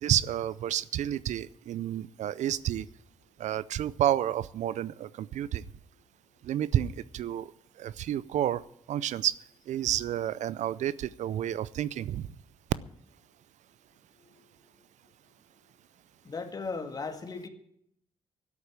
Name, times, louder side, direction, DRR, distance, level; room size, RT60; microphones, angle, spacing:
voice 1, 0.0-2.9 3.4-5.6 6.4-7.5 7.8-8.6 8.9-9.4 9.7-12.3, right 11 dB, 75° right, 19 dB, 0.5 m, -30 dB
voice 2, 16.2-17.5, left 4 dB, 30° left, 7 dB, 2.0 m, -37 dB
12.0 x 8.4 x 10.0 m, 0.72 s
cardioid pair, 110°, 12 cm